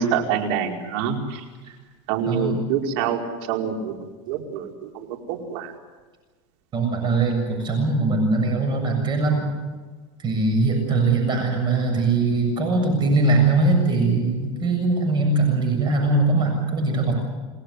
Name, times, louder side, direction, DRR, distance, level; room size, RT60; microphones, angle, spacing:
voice 1, 0.0-1.4 2.1-3.2 3.5-3.9 4.3-4.9 5.3-5.7, right 7 dB, 65° right, 3 dB, 4.9 m, -25 dB
voice 2, 2.2-2.6 6.7-9.5 10.2-17.1, right 3 dB, 30° right, 4 dB, 7.3 m, -21 dB
29.5 x 19.5 x 8.2 m, 1.4 s
supercardioid pair, 135°, 15 cm